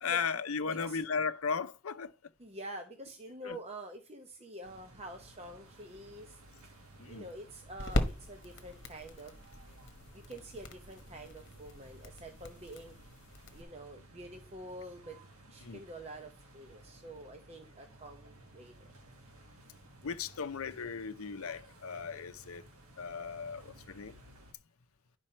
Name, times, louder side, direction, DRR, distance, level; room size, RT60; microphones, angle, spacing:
voice 1, 0.0-2.1 3.4-3.6 7.0-7.3 15.6-15.8 20.0-22.6 23.0-24.1, left 5 dB, 75° left, 0.6 m, -36 dB
voice 2, 0.7-1.0 2.4-6.4 7.1-9.3 10.1-12.9 13.5-15.2 15.5-18.9, right 1 dB, 30° right, 0.9 m, -47 dB
sound 1, 4.6-24.5, right 1 dB, 85° right, 1.7 m, -57 dB
sound 2, 5.7-13.6, left 1 dB, 50° left, 1.2 m, -40 dB
11.0 x 5.3 x 4.4 m
head